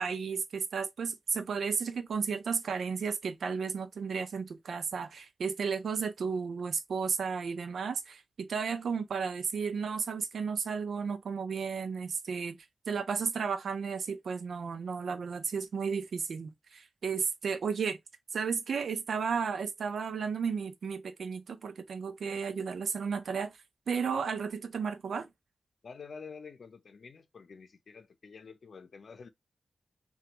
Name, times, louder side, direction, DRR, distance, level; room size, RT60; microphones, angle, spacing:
voice 1, 0.0-12.6 12.9-18.0 18.3-23.5 23.9-25.3, right 5 dB, 90° right, 0.5 m, -33 dB
voice 2, 25.8-29.3, left 5 dB, 65° left, 0.6 m, -48 dB
3.3 x 2.4 x 2.9 m
wide cardioid pair, 120°, 0 cm